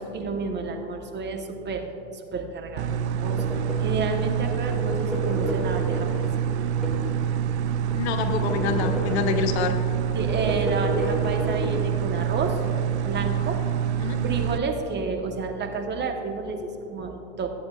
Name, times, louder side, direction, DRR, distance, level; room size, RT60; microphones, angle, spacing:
voice 1, 0.0-3.4 3.8-6.2 10.1-12.6 13.0-13.6 14.2-17.5, right 4 dB, 30° right, 3 dB, 1.2 m, -30 dB
sound 1, 2.8-14.6, right 8 dB, 80° right, 0.6 m, -26 dB
sound 2, 3.3-4.1 4.6-7.2 7.6-9.6 10.1-11.8, left 1 dB, ahead, 2.1 m, -32 dB
voice 2, 7.9-9.8 14.0-14.2, left 7 dB, 75° left, 6 dB, 1.0 m, -26 dB
14.0 x 8.4 x 2.5 m, 2.9 s
hypercardioid pair, 85°, 34 cm